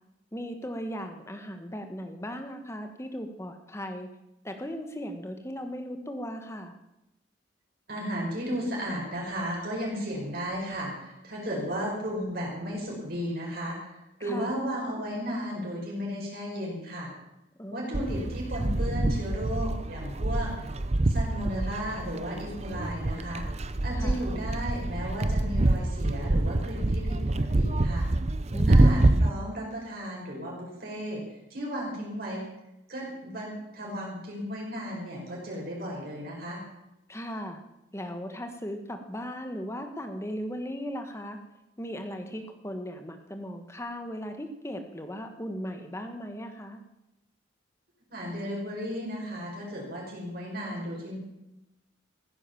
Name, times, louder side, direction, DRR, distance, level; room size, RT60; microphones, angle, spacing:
voice 1, 0.3-4.1 4.4-6.7 14.2-14.5 17.6-18.2 24.0-24.3 28.5-29.1 37.1-37.6 37.9-41.4 41.8-46.8, equal, 15° left, 6 dB, 1.5 m, -37 dB
voice 2, 7.9-13.8 14.2-17.1 17.7-20.5 21.1-23.5 23.8-28.1 28.7-31.2 31.5-32.4 32.9-36.6 48.1-51.2, equal, 50° right, -3 dB, 5.2 m, -34 dB
sound 1, 17.9-29.3, right 2 dB, 35° right, 0.6 m, -26 dB
15.5 x 9.9 x 7.1 m, 0.91 s
head